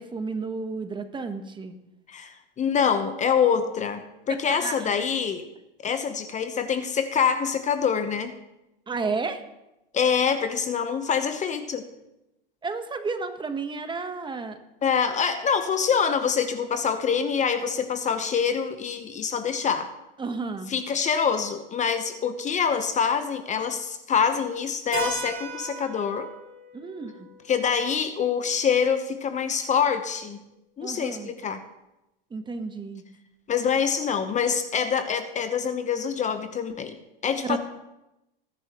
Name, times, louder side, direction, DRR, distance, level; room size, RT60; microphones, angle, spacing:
voice 1, 0.0-1.7 4.3-5.0 8.9-9.4 12.6-14.6 20.2-20.7 26.7-27.3 30.8-31.3 32.3-33.0 37.4-37.6, right 4 dB, 15° right, 8 dB, 1.2 m, -32 dB
voice 2, 2.1-5.5 5.8-8.3 9.9-11.9 14.8-19.9 20.7-26.3 27.5-30.4 30.8-31.6 33.5-37.0 37.2-37.6, left 6 dB, 25° left, 9 dB, 1.0 m, -25 dB
Keyboard (musical), 24.9-29.4, right 3 dB, 30° right, 5.2 m, -38 dB
19.5 x 10.5 x 3.1 m, 0.92 s
hypercardioid pair, 110°, 29 cm